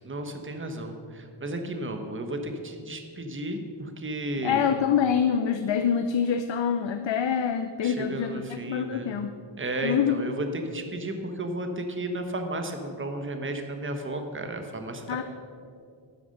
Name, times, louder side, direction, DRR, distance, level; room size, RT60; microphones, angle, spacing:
voice 1, 0.0-4.6 7.8-9.1 9.6-15.2, right 1 dB, 25° right, 5 dB, 1.2 m, -33 dB
voice 2, 4.4-9.3 9.8-10.4 15.1-15.2, left 7 dB, 70° left, 9 dB, 0.7 m, -26 dB
12.0 x 9.6 x 6.5 m, 2.3 s
wide cardioid pair, 130°, 46 cm